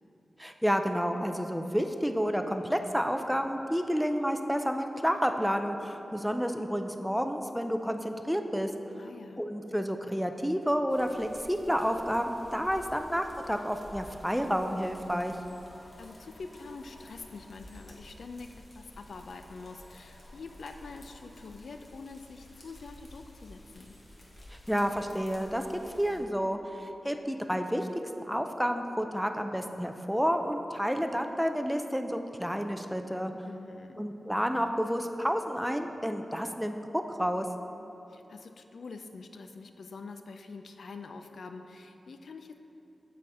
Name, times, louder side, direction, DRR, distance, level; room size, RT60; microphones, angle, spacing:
voice 1, 0.4-8.7 9.4-15.4 24.5-25.6 26.0-27.9 28.3-33.3 34.0-37.5, equal, ahead, 6 dB, 0.4 m, -30 dB
voice 2, 9.0-9.4 16.0-24.0 33.4-34.0 38.1-42.6, left 4 dB, 70° left, 7 dB, 0.4 m, -45 dB
sound 1, 10.9-26.2, left 1 dB, 40° left, 1.1 m, -52 dB
7.6 x 4.2 x 4.7 m, 3.0 s
wide cardioid pair, 130°, 0 cm